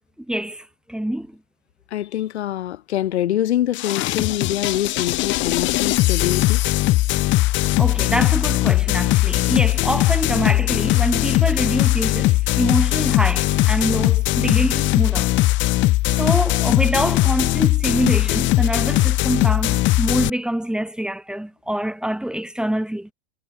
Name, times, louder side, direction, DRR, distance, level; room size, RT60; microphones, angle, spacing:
voice 1, 0.3-1.4 7.8-15.3 16.2-23.1, right 1 dB, ahead, 4.1 m, -25 dB
voice 2, 1.9-6.6, left 12 dB, 80° left, 7.0 m, -24 dB
sound 1, 3.7-20.3, left 18 dB, 35° left, 0.9 m, -19 dB
hypercardioid pair, 120°, 33 cm